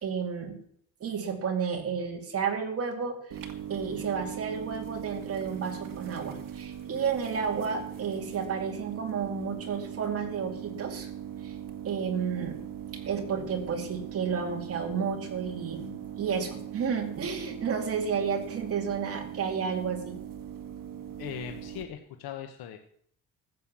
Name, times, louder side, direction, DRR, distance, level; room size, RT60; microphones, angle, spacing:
voice 1, 0.0-0.6 1.0-3.4 3.7-11.1 11.4-11.5 11.8-12.6 13.1-20.2, right 6 dB, 40° right, 3 dB, 2.4 m, -31 dB
sound 1, 3.3-21.8, right 10 dB, 65° right, 1.7 m, -40 dB
voice 2, 21.2-22.8, left 10 dB, 85° left, 6 dB, 1.2 m, -39 dB
14.0 x 7.8 x 7.5 m, 0.66 s
cardioid pair, 175°, 36 cm